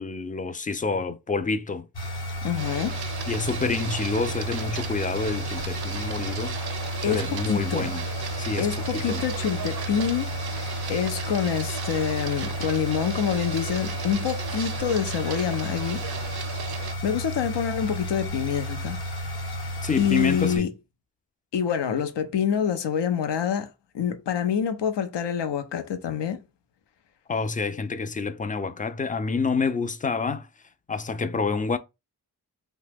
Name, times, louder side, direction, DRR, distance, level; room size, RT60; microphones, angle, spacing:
voice 1, 0.0-1.9 3.3-6.6 7.1-8.0 8.4-9.3 19.8-20.7 27.3-30.5 30.9-31.8, left 4 dB, 20° left, 0.3 m, -28 dB
sound 1, 1.9-20.6, equal, 65° left, 1.1 m, -32 dB
voice 2, 2.4-3.0 7.0-7.9 8.6-16.0 17.0-19.0 19.6-20.7 21.5-26.4, left 8 dB, 80° left, 0.6 m, -27 dB
Printer, 2.6-16.9, right 8 dB, 60° right, 0.6 m, -37 dB
2.9 x 2.2 x 3.3 m
cardioid pair, 45°, 42 cm